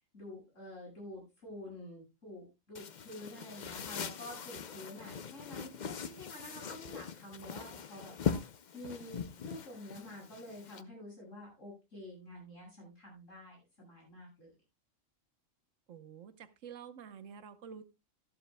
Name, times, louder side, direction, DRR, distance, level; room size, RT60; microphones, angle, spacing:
voice 1, 0.1-8.4 8.7-14.5, left 1 dB, 75° left, 8.0 m, -49 dB
sound 1, 2.7-10.8, left 7 dB, 45° left, 0.6 m, -41 dB
voice 2, 15.9-17.8, right 7 dB, 75° right, 1.3 m, -49 dB
14.0 x 11.5 x 2.2 m
omnidirectional pair, 1.3 m